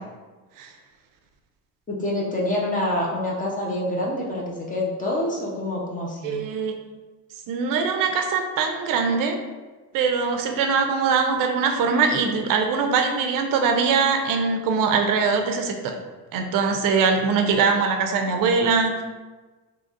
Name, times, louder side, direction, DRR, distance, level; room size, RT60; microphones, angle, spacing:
voice 1, 1.9-6.4, left 1 dB, 20° left, -3 dB, 0.6 m, -26 dB
voice 2, 6.2-6.7 7.5-9.4 9.9-16.0 16.3-19.0, right 5 dB, 60° right, 4 dB, 0.5 m, -22 dB
3.8 x 2.9 x 2.4 m, 1.3 s
cardioid pair, 135°, 38 cm